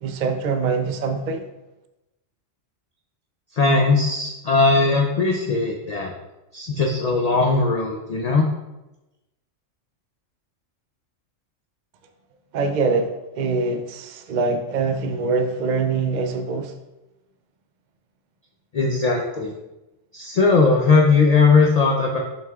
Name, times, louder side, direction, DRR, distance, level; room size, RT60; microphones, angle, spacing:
voice 1, 0.0-1.4 12.5-16.7, right 4 dB, 60° right, 0.4 m, -24 dB
voice 2, 3.5-6.1 6.5-8.5 18.7-19.5 20.1-22.2, left 4 dB, 50° left, 0.5 m, -19 dB
7.2 x 5.9 x 2.3 m
omnidirectional pair, 1.3 m